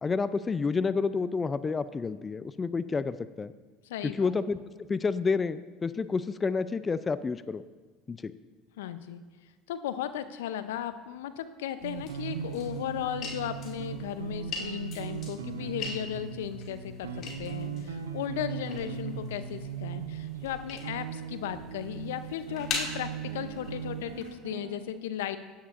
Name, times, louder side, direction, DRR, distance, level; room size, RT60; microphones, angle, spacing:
voice 1, 0.0-3.5 4.0-7.6 8.1-8.3, left 4 dB, 25° left, 14 dB, 0.4 m, -29 dB
voice 2, 3.9-4.3 8.8-9.2 9.7-25.4, left 11 dB, 75° left, 11 dB, 0.6 m, -36 dB
sound 1, 11.8-24.3, left 4 dB, 50° left, 2.3 m, -42 dB
sound 2, 11.8-24.8, right 7 dB, 85° right, 0.7 m, -38 dB
16.0 x 10.0 x 2.5 m, 1.4 s
hypercardioid pair, 75°, 0 cm